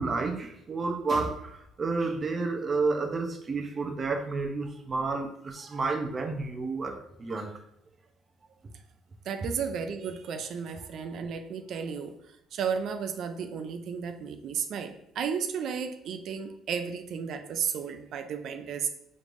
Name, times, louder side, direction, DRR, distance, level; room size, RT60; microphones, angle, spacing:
voice 1, 0.0-7.5, right 3 dB, 35° right, 3 dB, 0.7 m, -30 dB
voice 2, 9.2-18.9, right 6 dB, 65° right, 6 dB, 0.4 m, -33 dB
5.0 x 3.2 x 2.6 m, 0.81 s
cardioid pair, 105°, 0 cm